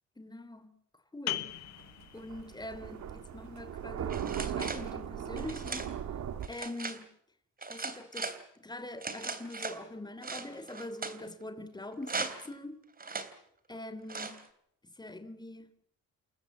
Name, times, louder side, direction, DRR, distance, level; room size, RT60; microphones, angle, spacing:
voice 1, 0.2-0.7 1.1-1.5 2.1-5.8 6.5-7.0 7.7-8.3 8.6-12.8 13.7-14.4 15.0-15.7, left 1 dB, 15° left, 3.2 m, -43 dB
sound 1, 1.3-6.6, left 13 dB, 65° left, 1.1 m, -44 dB
Thunder, 1.5-6.5, right 9 dB, 70° right, 2.0 m, -38 dB
sound 2, 4.1-4.9 5.4-5.9 6.4-7.0 7.6-8.4 9.0-9.8 10.2-11.2 12.0-12.5 13.0-13.3 14.1-14.4, right 4 dB, 30° right, 3.3 m, -38 dB
29.5 x 15.0 x 8.5 m
cardioid pair, 90°, 30 cm